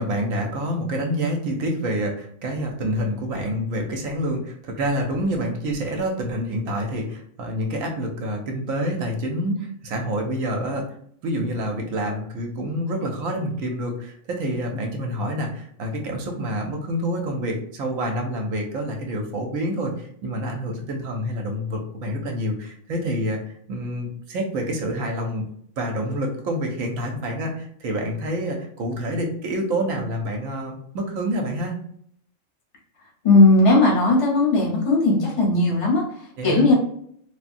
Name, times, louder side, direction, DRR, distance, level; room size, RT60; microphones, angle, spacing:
voice 1, 0.0-10.9 11.2-25.4 25.8-31.8 36.4-36.7, equal, 75° right, 2 dB, 1.0 m, -27 dB
voice 2, 33.2-36.8, left 2 dB, 30° left, -3 dB, 0.8 m, -17 dB
3.6 x 2.1 x 2.5 m, 0.66 s
omnidirectional pair, 1.4 m